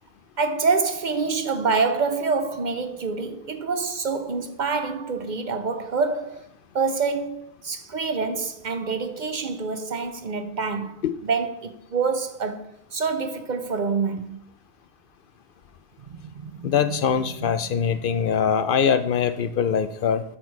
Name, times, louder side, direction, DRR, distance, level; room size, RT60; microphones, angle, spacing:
voice 1, 0.4-6.5 6.7-14.4 16.0-17.0 17.4-17.8 18.0-18.2, right 4 dB, 50° right, 0.7 m, -27 dB
voice 2, 16.6-20.2, left 7 dB, 65° left, 0.7 m, -22 dB
12.0 x 4.4 x 4.6 m
omnidirectional pair, 1.1 m